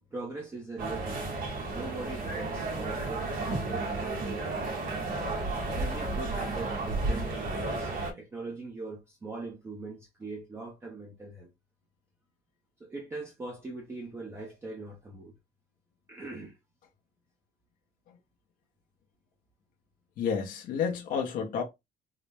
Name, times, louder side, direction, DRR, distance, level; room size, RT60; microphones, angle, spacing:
voice 1, 0.1-1.4 1.7-4.9 5.8-11.5 12.8-15.3 16.1-16.6, right 3 dB, 15° right, 0.6 m, -41 dB
sound 1, 0.8-8.1, right 2 dB, 75° right, 1.2 m, -32 dB
voice 2, 20.2-21.6, left 6 dB, 65° left, 0.7 m, -30 dB
3.8 x 2.1 x 3.2 m
cardioid pair, 160°, 15 cm